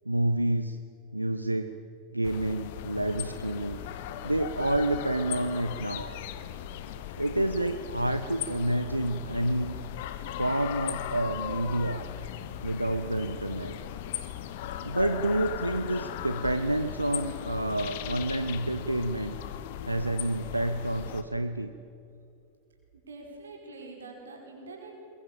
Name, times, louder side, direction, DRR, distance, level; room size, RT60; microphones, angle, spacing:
voice 1, 0.1-0.8 1.1-1.7 2.1-3.8 4.2-6.2 7.2-9.7 10.4-12.1 12.6-13.7 14.8-19.4 19.8-21.7, right 1 dB, 85° right, 9 dB, 0.7 m, -29 dB
sound 1, 2.2-21.2, left 11 dB, 50° left, 1.4 m, -38 dB
voice 2, 22.9-24.9, right 3 dB, 70° right, 0 dB, 4.9 m, -45 dB
23.0 x 22.0 x 7.3 m, 2.7 s
figure-of-eight pair, 90°, 0 cm